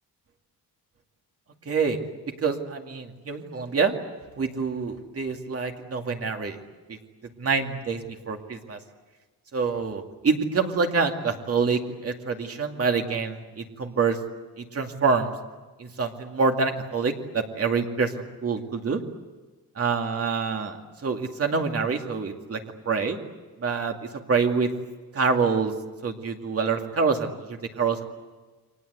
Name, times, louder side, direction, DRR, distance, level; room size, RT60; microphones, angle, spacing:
voice 1, 1.7-2.0 2.4-4.0 4.4-6.6 6.9-7.0 7.4-8.8 9.5-14.2 14.6-15.3 15.8-19.0 19.8-22.6 22.9-23.2 23.6-24.7 25.1-25.7 26.0-28.0, right 5 dB, 40° right, 4 dB, 2.5 m, -26 dB
30.0 x 24.0 x 8.2 m, 1.3 s
wide cardioid pair, 165°, 38 cm